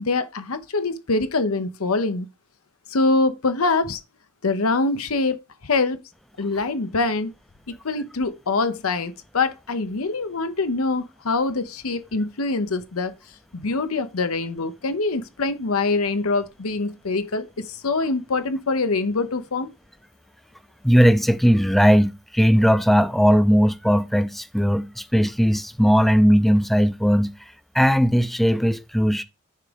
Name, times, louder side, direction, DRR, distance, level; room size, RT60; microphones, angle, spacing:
voice 1, 0.0-2.3 2.9-4.0 4.4-5.4 5.6-6.0 6.4-7.3 7.8-13.1 13.5-19.7, left 3 dB, 90° left, 0.9 m, -24 dB
voice 2, 20.8-27.3 27.7-29.2, equal, ahead, 0.5 m, -18 dB
9.8 x 3.6 x 5.1 m
head